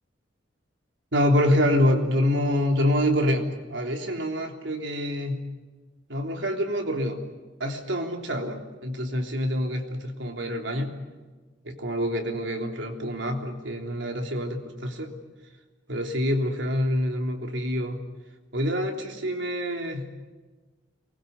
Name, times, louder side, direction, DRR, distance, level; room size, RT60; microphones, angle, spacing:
voice 1, 1.1-5.5 6.1-7.2 7.6-11.0 11.6-15.1 15.9-18.0 18.5-20.1, equal, 75° right, 3 dB, 3.4 m, -26 dB
23.5 x 21.0 x 9.4 m, 1.3 s
head